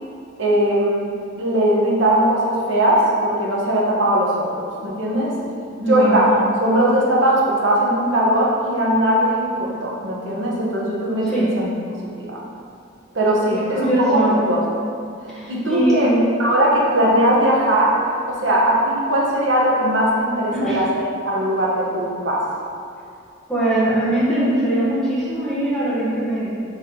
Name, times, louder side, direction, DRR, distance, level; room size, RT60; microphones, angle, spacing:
voice 1, 0.4-5.3 5.8-11.7 12.2-12.4 13.1-14.6 15.3-16.1 16.4-22.5, right 1 dB, 70° right, -4 dB, 1.1 m, -19 dB
voice 2, 5.8-6.3 11.2-11.5 13.7-14.4 15.3-16.3 20.5-20.8 23.5-26.5, right 1 dB, ahead, -11 dB, 1.5 m, -21 dB
5.3 x 3.4 x 5.3 m, 2.4 s
head